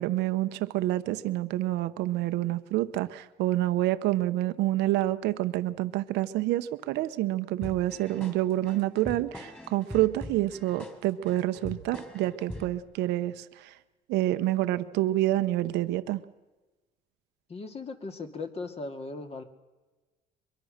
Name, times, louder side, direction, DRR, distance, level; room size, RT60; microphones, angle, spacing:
voice 1, 0.0-13.8 14.1-16.2, right 15 dB, 90° right, 11 dB, 0.9 m, -28 dB
sound 1, 7.6-12.8, left 1 dB, 10° left, 3.6 m, -43 dB
voice 2, 17.5-19.4, left 3 dB, 35° left, 6 dB, 2.4 m, -38 dB
23.5 x 22.5 x 6.6 m, 1.2 s
cardioid pair, 110°, 17 cm